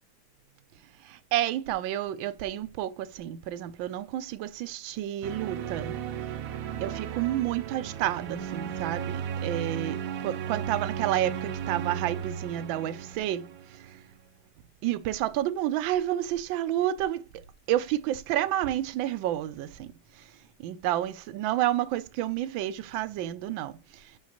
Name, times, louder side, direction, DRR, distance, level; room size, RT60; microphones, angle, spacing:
voice 1, 1.0-6.0 6.8-14.0 14.8-17.4 17.7-20.3 20.6-24.2, right 13 dB, 85° right, 1.3 m, -30 dB
sound 1, 5.2-14.1, right 8 dB, 70° right, 0.9 m, -35 dB
6.4 x 5.2 x 2.8 m
omnidirectional pair, 2.1 m